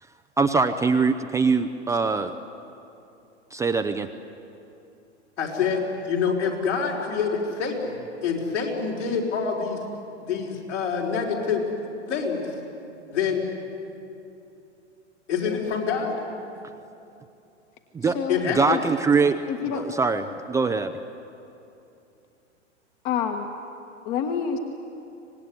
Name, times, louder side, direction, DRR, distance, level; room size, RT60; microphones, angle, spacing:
voice 1, 0.4-2.3 3.5-4.1 17.9-18.2 18.4-19.4 19.7-20.9, right 4 dB, 10° right, 6 dB, 0.5 m, -22 dB
voice 2, 5.4-8.0 8.2-9.8 10.2-11.7 12.1-12.5 13.1-13.4 15.3-16.1 18.3-18.8, left 6 dB, 70° left, -2 dB, 5.5 m, -26 dB
voice 3, 18.0-18.4 18.7-18.8 19.5-19.9 20.2-20.3 23.0-23.5 24.0-24.6, left 8 dB, 45° left, 5 dB, 1.6 m, -27 dB
25.0 x 19.5 x 9.9 m, 2.8 s
hypercardioid pair, 110°, 37 cm